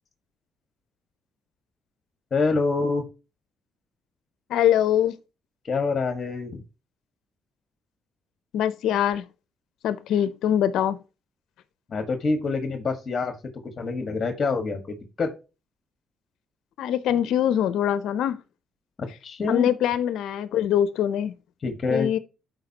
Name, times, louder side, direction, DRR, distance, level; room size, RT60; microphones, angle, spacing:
voice 1, 2.3-3.0 5.6-6.6 11.9-13.3 13.8-15.3 19.2-19.7 21.6-22.1, left 4 dB, 40° left, 1.6 m, -26 dB
voice 2, 4.5-5.1 8.5-9.2 9.8-11.0 16.8-18.4 19.5-21.3 21.9-22.2, left 10 dB, 80° left, 0.6 m, -23 dB
12.5 x 4.7 x 2.9 m
cardioid pair, 90°, 0 cm